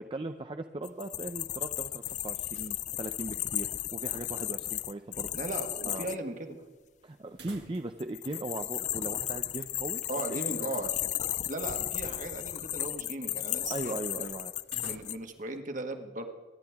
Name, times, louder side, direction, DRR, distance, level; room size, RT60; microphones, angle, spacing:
voice 1, 0.1-5.3 5.9-6.1 7.0-10.0 10.3-10.7 13.7-14.5, right 2 dB, 30° right, 7 dB, 0.6 m, -38 dB
sound 1, 0.8-6.2 8.0-15.2, left 14 dB, 45° left, 0.3 m, -35 dB
sound 2, 2.0-2.9 3.2-3.3 7.3-8.1 8.4-8.5 10.1-11.0 14.6-15.5, right 3 dB, 75° right, 2.0 m, -52 dB
voice 2, 5.3-6.6 10.1-10.9 11.5-14.3 14.8-16.3, right 2 dB, 50° right, 5 dB, 1.7 m, -37 dB
24.5 x 10.5 x 3.6 m, 1.4 s
head